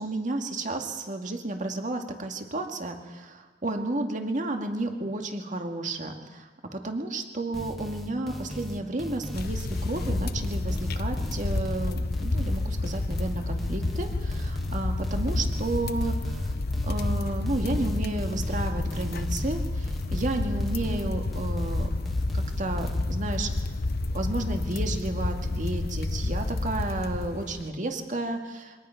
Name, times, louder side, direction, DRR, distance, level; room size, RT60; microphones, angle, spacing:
voice 1, 0.0-16.5 16.8-21.9 22.3-23.5 24.1-28.9, right 2 dB, 45° right, 4 dB, 2.1 m, -32 dB
sound 1, 7.5-23.0, equal, ahead, 1.9 m, -38 dB
sound 2, 9.3-27.7, left 2 dB, 55° left, 0.8 m, -30 dB
24.0 x 18.5 x 5.8 m, 1.3 s
head